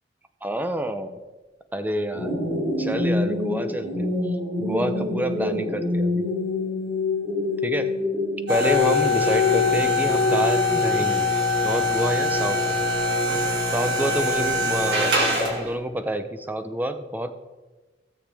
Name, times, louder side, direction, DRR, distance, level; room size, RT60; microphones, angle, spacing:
voice 1, 0.4-1.2 1.7-2.5 2.8-6.3 7.6-7.9 8.5-11.3 11.6-12.8 13.7-17.3, right 1 dB, 10° right, 9 dB, 0.7 m, -28 dB
sound 1, 2.1-11.1, left 3 dB, 50° right, 3.9 m, -26 dB
sound 2, 8.5-15.7, left 2 dB, 70° right, 2.4 m, -23 dB
16.5 x 7.2 x 3.5 m, 1.2 s
head